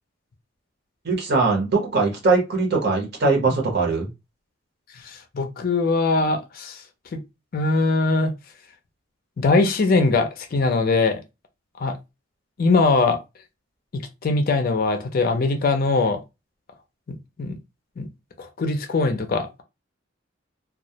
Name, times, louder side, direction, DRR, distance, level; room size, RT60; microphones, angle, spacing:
voice 1, 1.0-4.1, right 3 dB, 50° right, 0.8 m, -21 dB
voice 2, 5.0-6.8 7.1-7.2 7.5-8.3 9.4-11.2 11.8-11.9 12.6-13.2 13.9-16.2 17.1-17.6 18.0-18.1 18.4-19.5, left 3 dB, 45° left, 0.4 m, -21 dB
2.2 x 2.0 x 2.7 m
head